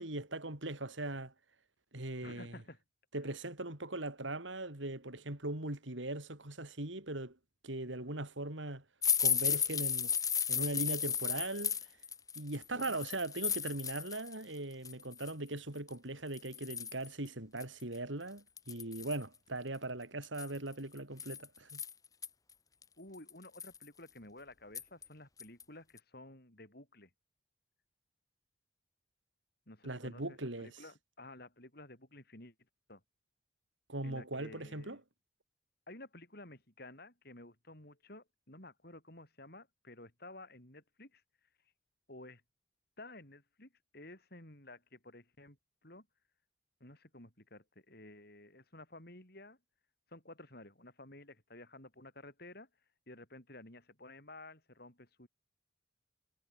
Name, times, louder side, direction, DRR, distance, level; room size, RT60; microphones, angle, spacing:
voice 1, 0.0-1.3 1.9-2.6 3.1-7.4 7.6-8.8 9.2-10.1 10.5-11.8 12.4-21.8 29.8-30.7 33.9-35.0, right 2 dB, 75° right, 3.8 m, -40 dB
voice 2, 2.2-2.8 23.0-27.1 29.7-32.5 32.9-33.0 34.0-35.0 35.9-41.2 42.1-42.4 43.0-45.6 45.8-46.1 46.8-49.6 50.1-52.7 53.1-55.3, left 2 dB, 55° left, 7.8 m, -53 dB
sound 1, 9.0-14.4 14.7-15.3 15.9-16.0 16.3-17.1 17.6-17.7 17.9-18.0 18.6-19.2 20.2-22.3 22.8-22.9 23.3-23.8 24.7-25.1 25.4-25.6 26.0-26.1, left 7 dB, 20° left, 0.8 m, -34 dB
head